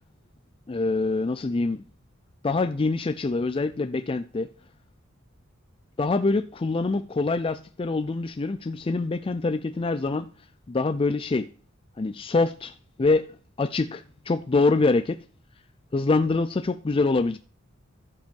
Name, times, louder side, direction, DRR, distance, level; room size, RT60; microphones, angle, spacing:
voice 1, 0.7-1.8 2.4-4.5 6.0-10.3 10.7-11.5 12.0-13.3 13.6-15.2 15.9-17.4, left 3 dB, 25° left, 0.4 m, -25 dB
14.5 x 5.3 x 5.3 m
head